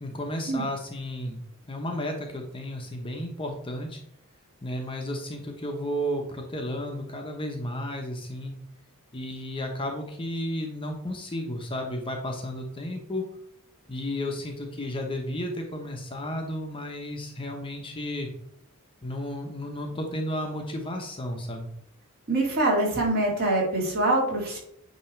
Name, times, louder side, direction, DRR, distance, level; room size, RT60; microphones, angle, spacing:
voice 1, 0.0-4.0 4.6-8.5 9.1-13.2 13.9-18.3 19.0-21.7, left 1 dB, 25° left, 3 dB, 0.9 m, -33 dB
voice 2, 22.3-24.6, right 2 dB, 45° right, -3 dB, 2.4 m, -24 dB
8.8 x 3.0 x 4.4 m, 0.74 s
head